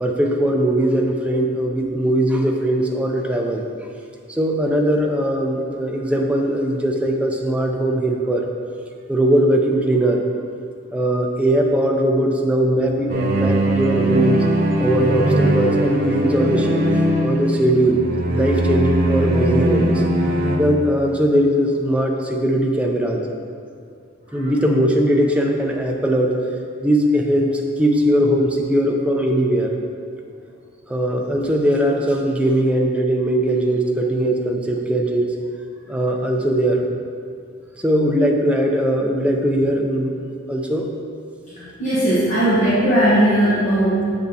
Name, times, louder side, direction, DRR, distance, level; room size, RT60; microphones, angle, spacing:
voice 1, 0.0-3.6 4.3-8.4 9.1-10.2 10.9-14.4 14.8-16.8 17.2-20.0 20.6-23.2 24.3-26.3 26.8-29.8 30.9-35.3 35.9-36.9 37.8-40.9, right 1 dB, 5° right, 1 dB, 0.4 m, -20 dB
sound 1, 13.1-20.6, right 1 dB, 50° right, 0.7 m, -20 dB
voice 2, 41.5-44.1, right 1 dB, 35° left, -10 dB, 1.1 m, -18 dB
7.1 x 3.5 x 4.0 m, 2.3 s
head